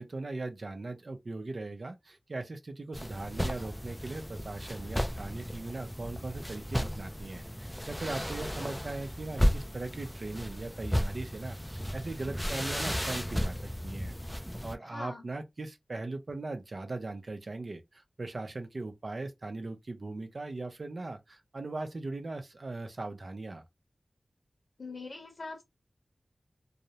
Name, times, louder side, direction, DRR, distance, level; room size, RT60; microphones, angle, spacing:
voice 1, 0.0-23.6, right 2 dB, 60° right, 0.5 m, -39 dB
sound 1, 2.9-14.7, equal, 5° left, 0.3 m, -34 dB
voice 2, 14.8-15.2 24.8-25.6, left 3 dB, 70° left, 0.7 m, -42 dB
2.4 x 2.0 x 2.8 m
wide cardioid pair, 60°, 0 cm